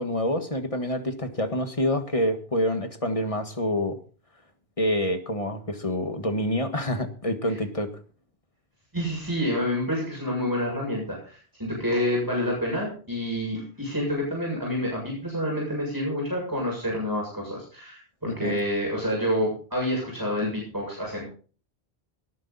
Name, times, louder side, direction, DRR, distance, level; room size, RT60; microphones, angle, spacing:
voice 1, 0.0-4.0 4.8-7.9 18.2-18.6, left 1 dB, 30° left, 7 dB, 1.7 m, -27 dB
voice 2, 8.9-21.2, equal, 20° right, -2 dB, 7.6 m, -28 dB
19.0 x 10.5 x 4.2 m, 0.40 s
omnidirectional pair, 1.1 m